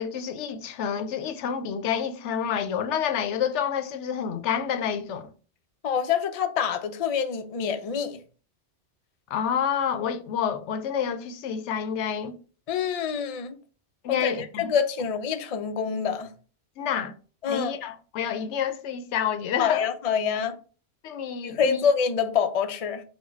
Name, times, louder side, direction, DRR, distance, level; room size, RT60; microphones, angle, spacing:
voice 1, 0.0-5.3 9.3-12.4 14.0-14.7 16.8-17.1 17.5-19.9 21.0-21.8, left 8 dB, 75° left, 0.9 m, -28 dB
voice 2, 5.8-8.2 12.7-13.5 14.1-16.3 17.4-17.7 19.6-20.6 21.4-23.0, left 7 dB, 55° left, 0.4 m, -26 dB
4.2 x 2.2 x 4.3 m
omnidirectional pair, 1.2 m